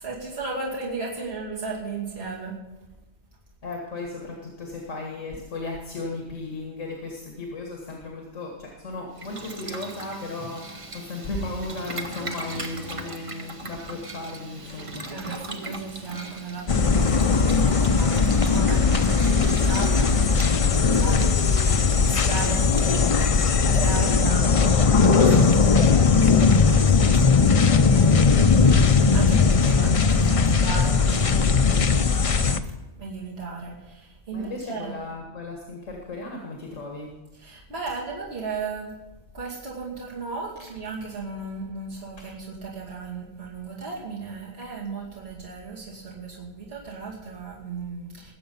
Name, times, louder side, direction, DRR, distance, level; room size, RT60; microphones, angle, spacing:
voice 1, 0.0-2.6 14.7-25.9 26.4-28.7 29.1-31.5 33.0-35.0 37.4-38.9 39.3-48.3, right 4 dB, 55° right, -5 dB, 2.8 m, -35 dB
voice 2, 3.6-15.3 29.1-29.6 31.4-31.9 34.3-37.2, left 2 dB, 80° left, 0 dB, 2.1 m, -36 dB
Boiling, 9.1-23.7, right 2 dB, 30° right, 1.0 m, -39 dB
sound 1, 16.7-32.6, left 5 dB, 45° left, 0.5 m, -19 dB
20.5 x 7.8 x 5.5 m, 1.1 s
omnidirectional pair, 1.3 m